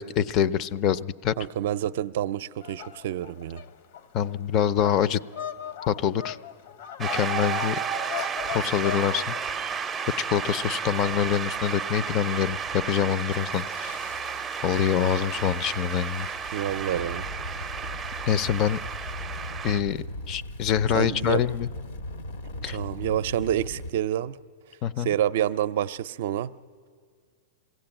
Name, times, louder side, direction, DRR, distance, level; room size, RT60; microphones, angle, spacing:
voice 1, 0.0-1.3 4.1-5.2 5.9-6.4 7.0-7.8 8.2-9.3 10.3-14.0 14.6-16.3 18.3-18.8 19.6-21.7 22.6-22.8 24.8-25.1, left 9 dB, 35° left, 17 dB, 0.5 m, -25 dB
voice 2, 1.4-3.6 16.5-17.3 20.9-21.4 22.7-24.4 25.0-26.5, right 11 dB, 60° right, 15 dB, 0.5 m, -28 dB
sound 1, 2.6-9.4, left 10 dB, 60° left, 0.9 m, -38 dB
Shout / Cheering / Applause, 7.0-19.8, right 6 dB, 15° right, 0.5 m, -32 dB
Engine starting, 8.4-8.7 9.4-9.7 10.1-10.6 11.0-11.6 12.0-12.2 12.5-23.9, left 1 dB, 90° left, 1.4 m, -40 dB
22.0 x 16.0 x 8.9 m, 2.1 s
supercardioid pair, 150°, 0 cm